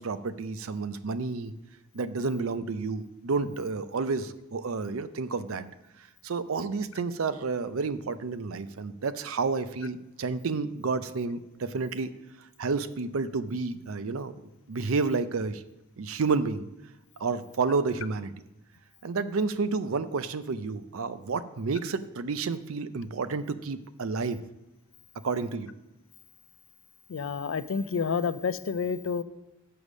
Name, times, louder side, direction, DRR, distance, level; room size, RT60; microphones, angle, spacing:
voice 1, 0.0-1.5 1.9-5.6 6.2-12.1 12.6-14.3 14.7-15.6 16.0-16.6 17.2-18.3 19.0-24.4 25.2-25.7, right 4 dB, 75° right, 13 dB, 0.5 m, -30 dB
voice 2, 27.1-29.2, left 5 dB, 60° left, 14 dB, 0.4 m, -29 dB
7.0 x 6.6 x 6.2 m, 0.95 s
head